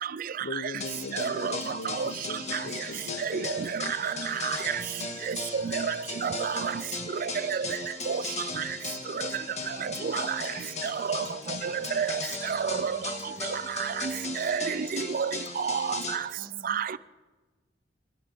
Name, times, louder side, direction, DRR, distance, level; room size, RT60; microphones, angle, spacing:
voice 1, 0.4-3.5 3.8-3.9, left 2 dB, 85° left, 0.8 m, -39 dB
sound 1, 0.8-16.2, left 3 dB, 40° left, 1.7 m, -37 dB
voice 2, 1.2-1.5 2.0-2.1 3.4-3.6 4.0-4.1 4.4-4.6 5.3-6.0 6.2-6.7 7.5-7.6 8.1-8.2 10.1-10.4 11.1-11.2 11.6-12.1 12.5-12.9 13.8-13.9 14.4-16.2 16.7-16.8, right 6 dB, 55° right, 0.4 m, -29 dB
voice 3, 8.9-10.2 11.6-11.8 14.2-14.3 16.4-17.0, right 2 dB, 35° right, 1.1 m, -52 dB
22.0 x 17.0 x 3.6 m
head